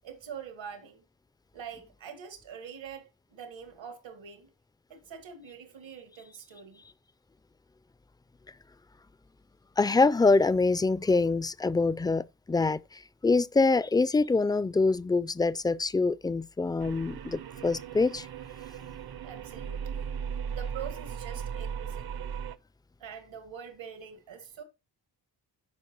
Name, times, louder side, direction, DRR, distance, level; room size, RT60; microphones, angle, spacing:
voice 1, 0.0-1.0 1.5-4.5 4.9-6.8 19.2-20.1 20.5-22.1 23.0-24.6, right 7 dB, 85° right, 1.9 m, -44 dB
voice 2, 9.8-18.3, left 3 dB, 10° left, 0.4 m, -25 dB
sound 1, 16.8-22.6, right 7 dB, 55° right, 0.7 m, -37 dB
14.0 x 5.2 x 3.0 m
cardioid pair, 80°, 44 cm